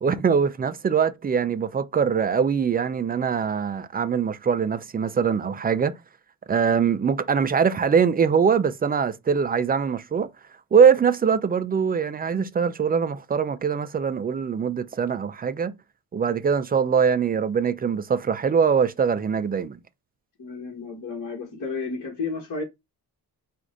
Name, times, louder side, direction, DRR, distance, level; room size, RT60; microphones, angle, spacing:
voice 1, 0.0-5.9 6.5-10.3 10.7-15.8 16.1-19.8, right 6 dB, 25° right, 0.4 m, -22 dB
voice 2, 20.4-22.6, left 4 dB, 55° left, 1.8 m, -32 dB
4.7 x 2.5 x 3.8 m
cardioid pair, 115°, 39 cm